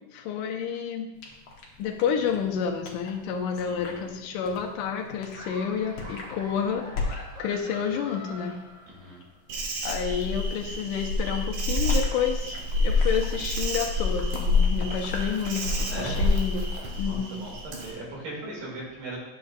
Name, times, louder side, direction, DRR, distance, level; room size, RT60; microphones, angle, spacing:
voice 1, 0.1-1.1 1.8-8.6 9.8-16.7 17.0-17.4, left 7 dB, 90° left, 1 dB, 2.3 m, -30 dB
sound 1, 1.1-16.4, left 3 dB, 65° left, 1.3 m, -42 dB
voice 2, 3.6-4.1 8.9-9.2 15.9-16.2 17.0-19.2, right 2 dB, 80° right, -4 dB, 3.9 m, -39 dB
Laughter, 5.3-9.4, equal, 30° right, 0.7 m, -44 dB
Insect, 9.5-17.9, left 2 dB, 65° right, 2.1 m, -27 dB
9.2 x 7.0 x 2.4 m, 0.98 s
omnidirectional pair, 3.8 m